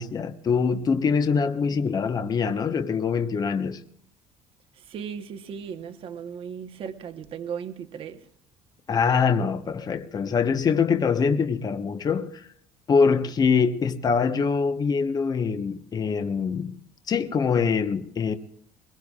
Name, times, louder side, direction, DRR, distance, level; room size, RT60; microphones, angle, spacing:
voice 1, 0.0-3.8 8.9-12.4 12.9-16.8 17.1-18.3, left 5 dB, 35° left, 1.1 m, -24 dB
voice 2, 4.8-8.2, right 7 dB, 50° right, 1.1 m, -36 dB
22.0 x 21.5 x 2.4 m
cardioid pair, 115°, 12 cm